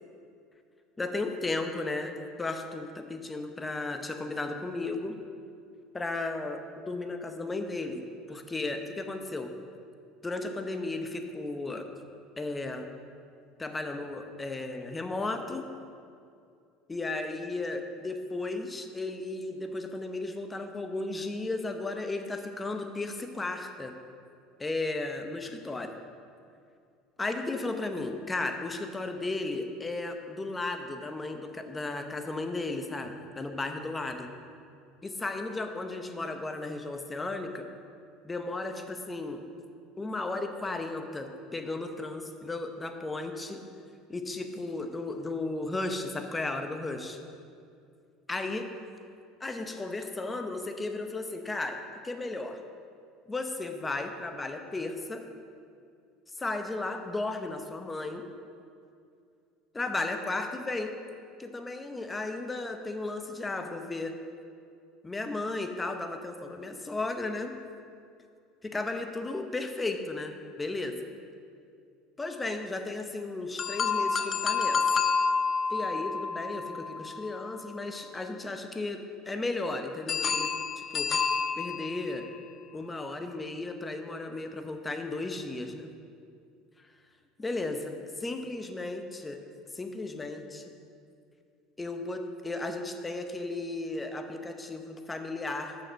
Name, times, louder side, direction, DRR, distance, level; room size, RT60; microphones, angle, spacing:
voice 1, 1.0-2.1 2.4-5.2 5.9-8.0 8.3-9.5 10.2-11.9 12.4-12.9 13.6-15.6 16.9-23.9 24.6-25.9 27.2-34.3 35.0-37.7 38.2-39.4 40.0-43.6 44.1-47.2 48.3-48.7 49.4-52.6 53.3-55.2 56.4-58.2 59.7-60.9 61.4-64.1 65.0-67.5 68.6-71.0 72.2-74.8 75.7-81.1 81.6-82.3 82.7-85.9 86.8-86.9 87.4-89.4 89.7-90.8 91.8-95.8, left 2 dB, 15° left, 6 dB, 0.8 m, -34 dB
sound 1, 73.6-77.7 80.1-82.4, left 5 dB, 35° left, 0.5 m, -29 dB
6.7 x 6.5 x 6.2 m, 2.4 s
supercardioid pair, 100°, 0 cm